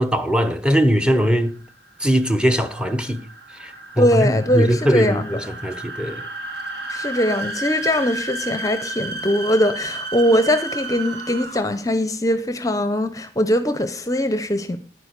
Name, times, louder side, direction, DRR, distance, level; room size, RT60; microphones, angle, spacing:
voice 1, 0.0-1.5 2.0-3.2 3.6-6.2, equal, 5° right, 1.1 m, -20 dB
sound 1, 1.2-11.9, right 2 dB, 65° right, 2.3 m, -33 dB
voice 2, 4.0-5.3 6.9-14.8, equal, 20° left, 0.8 m, -21 dB
9.9 x 9.8 x 6.6 m
head